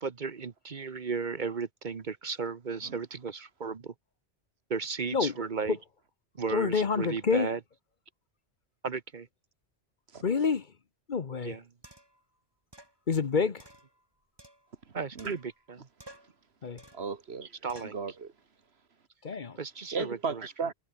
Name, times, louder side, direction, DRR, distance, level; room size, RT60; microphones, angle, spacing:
voice 1, 0.0-3.9 4.7-5.8 6.3-7.6 8.8-9.3 11.4-11.6 13.3-13.5 14.9-15.9 17.6-17.9 19.6-20.4, right 5 dB, 45° right, 1.1 m, -35 dB
voice 2, 6.5-7.5 10.2-10.7 11.1-11.5 13.1-13.6 16.6-16.8 19.2-19.6, left 5 dB, 45° left, 1.0 m, -27 dB
sound 1, 11.1-11.2 11.8-12.2 12.7-13.0 13.6-14.9 15.2-15.7 16.0-16.4 16.8-17.1 17.7-18.0, right 1 dB, 20° right, 4.3 m, -53 dB
voice 3, 16.9-17.5 17.8-18.3 19.9-20.7, right 5 dB, 65° right, 1.7 m, -34 dB
omnidirectional pair, 1.1 m